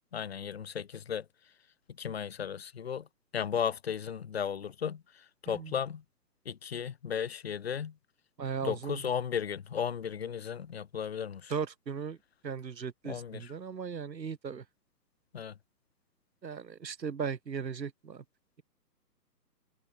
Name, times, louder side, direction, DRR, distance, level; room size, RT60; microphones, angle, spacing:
voice 1, 0.1-1.3 2.0-3.1 3.3-5.0 5.4-6.0 6.5-7.9 8.6-11.5 13.0-13.5 15.3-15.5, left 8 dB, 35° left, 2.1 m, -35 dB
voice 2, 8.4-9.0 11.5-12.2 12.4-14.6 16.4-18.2, right 6 dB, 85° right, 2.8 m, -37 dB
hypercardioid pair, 175°, 50 cm